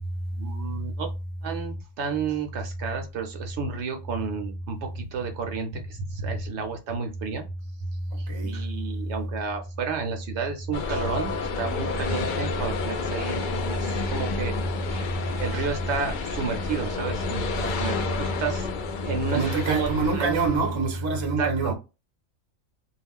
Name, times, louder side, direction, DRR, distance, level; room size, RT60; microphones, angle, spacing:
voice 1, 0.4-1.1 1.4-7.4 8.2-14.5 14.9-15.1 15.4-18.7 19.0-20.4 21.4-21.7, right 5 dB, 65° right, 0.8 m, -31 dB
sound 1, 10.7-20.8, left 4 dB, 75° left, 0.4 m, -30 dB
voice 2, 19.3-21.7, right 3 dB, 30° right, 0.5 m, -26 dB
2.3 x 2.1 x 3.4 m
omnidirectional pair, 1.4 m